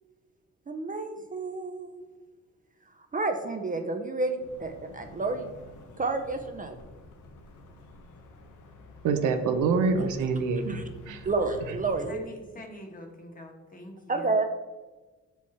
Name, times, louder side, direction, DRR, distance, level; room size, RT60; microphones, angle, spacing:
voice 1, 0.7-2.0 3.1-5.5 6.0-6.8 9.9-10.1 10.7-10.8 11.2-12.2 14.1-14.4, right 3 dB, 25° right, 5 dB, 0.6 m, -30 dB
sound 1, 4.4-12.1, left 2 dB, 80° left, 1.1 m, -49 dB
voice 2, 9.0-11.2, right 4 dB, 85° right, 7 dB, 0.8 m, -26 dB
voice 3, 12.1-14.3, left 1 dB, 30° left, 3 dB, 1.4 m, -45 dB
7.0 x 4.6 x 4.2 m, 1.3 s
cardioid pair, 90°, 30 cm